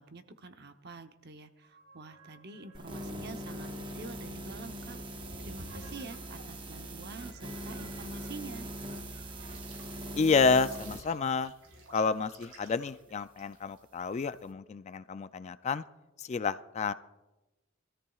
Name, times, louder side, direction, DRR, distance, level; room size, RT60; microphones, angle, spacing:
voice 1, 0.0-5.0 5.4-8.7, right 3 dB, 55° right, 8 dB, 0.8 m, -47 dB
sound 1, 1.6-6.6 7.1-13.8, right 1 dB, 85° right, 4.5 m, -53 dB
sound 2, 2.7-11.0, right 1 dB, 25° right, 0.8 m, -41 dB
voice 2, 10.1-11.5 11.9-15.8 16.2-16.9, left 4 dB, 35° left, 13 dB, 0.3 m, -29 dB
23.0 x 13.5 x 2.4 m, 1.1 s
head